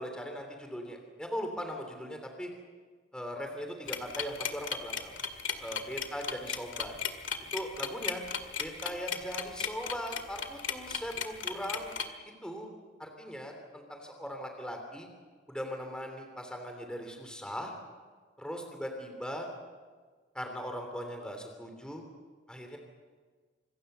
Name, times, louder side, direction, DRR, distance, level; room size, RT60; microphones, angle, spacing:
voice 1, 0.0-2.5 3.1-5.1 5.6-7.0 7.5-8.2 8.6-11.9 12.4-12.7 13.0-15.1 15.5-17.7 18.4-19.5 20.3-22.0 22.5-22.8, equal, 5° left, 4 dB, 3.0 m, -39 dB
sound 1, 3.9-12.1, left 7 dB, 85° left, 2.0 m, -35 dB
26.5 x 22.5 x 6.8 m, 1.5 s
head